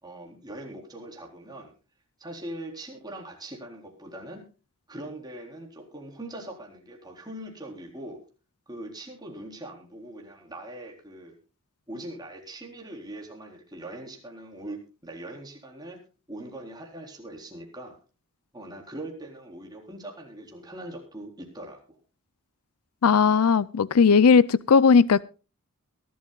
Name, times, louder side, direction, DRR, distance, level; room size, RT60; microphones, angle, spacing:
voice 1, 0.0-1.7 2.2-4.4 4.9-8.2 8.7-11.4 11.9-16.0 16.3-18.0 18.5-22.0, right 1 dB, 20° right, 4.0 m, -41 dB
voice 2, 23.0-25.2, left 5 dB, 85° left, 0.5 m, -18 dB
22.5 x 12.5 x 2.4 m
head